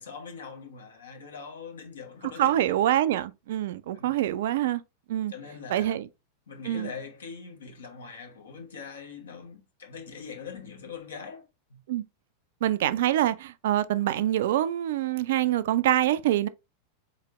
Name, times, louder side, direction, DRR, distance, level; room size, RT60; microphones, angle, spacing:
voice 1, 0.0-2.8 3.9-4.1 5.3-6.0 6.5-11.8, left 5 dB, 65° left, 0.9 m, -42 dB
voice 2, 2.4-4.8 5.1-5.3 5.7-6.1 6.6-6.9 11.9-12.0 12.6-16.5, right 12 dB, 55° right, 0.3 m, -25 dB
4.0 x 3.1 x 2.9 m
figure-of-eight pair, 90°, 0 cm